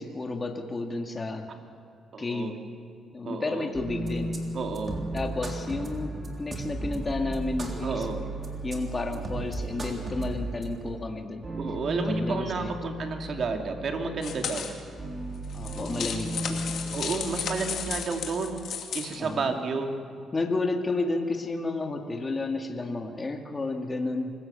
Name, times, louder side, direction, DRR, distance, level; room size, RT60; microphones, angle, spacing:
voice 1, 0.0-1.5 2.2-2.5 3.1-4.3 5.1-6.1 6.4-8.1 8.6-11.4 12.0-12.7 15.5-16.7 19.2-19.5 20.3-24.3, left 3 dB, 30° left, 4 dB, 2.1 m, -31 dB
voice 2, 2.1-2.5 3.2-3.7 4.5-5.0 7.8-8.2 11.6-14.7 16.9-20.0, right 4 dB, 55° right, 4 dB, 2.5 m, -31 dB
sound 1, 3.7-17.9, right 1 dB, 35° right, 3.3 m, -35 dB
sound 2, 14.2-14.7 15.4-19.2, left 7 dB, 65° left, 2.4 m, -34 dB
25.0 x 15.5 x 7.0 m, 2.6 s
cardioid pair, 90°, 0 cm